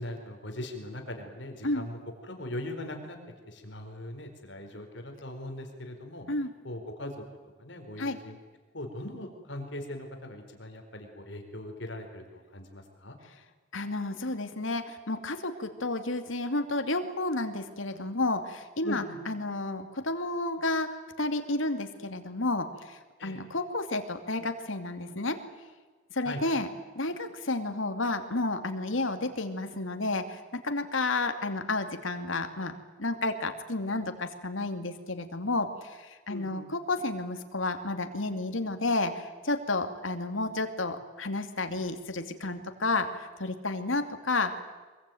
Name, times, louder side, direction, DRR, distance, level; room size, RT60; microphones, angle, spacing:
voice 1, 0.0-3.2 3.5-6.2 6.6-7.2 7.6-8.4 8.7-13.2 18.8-19.2 23.2-23.4 26.2-26.4 36.3-36.7, left 1 dB, 65° left, 5 dB, 4.5 m, -40 dB
voice 2, 13.7-20.9 21.2-25.4 26.1-26.7 26.9-32.7 33.0-43.1 43.4-44.5, left 2 dB, 80° left, 7 dB, 2.6 m, -31 dB
24.5 x 22.5 x 9.3 m, 1.3 s
head